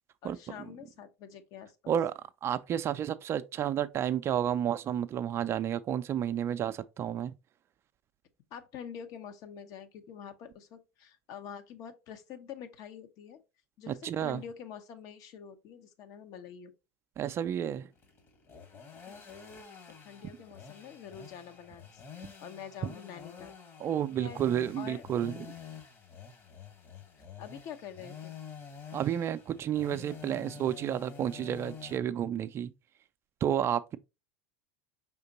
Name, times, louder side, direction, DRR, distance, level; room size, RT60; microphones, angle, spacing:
voice 1, 0.2-1.9 8.5-13.4 13.8-16.7 19.1-19.3 19.9-23.5 24.2-24.4 24.8-25.0 27.2-28.3, left 8 dB, 50° left, 0.8 m, -46 dB
voice 2, 1.9-7.3 13.9-14.4 17.2-17.9 23.8-25.5 28.9-32.7 33.4-34.0, right 10 dB, 35° right, 0.4 m, -31 dB
sound 1, 17.9-32.0, left 7 dB, 35° left, 1.3 m, -48 dB
5.0 x 3.7 x 2.8 m
hypercardioid pair, 85°, 7 cm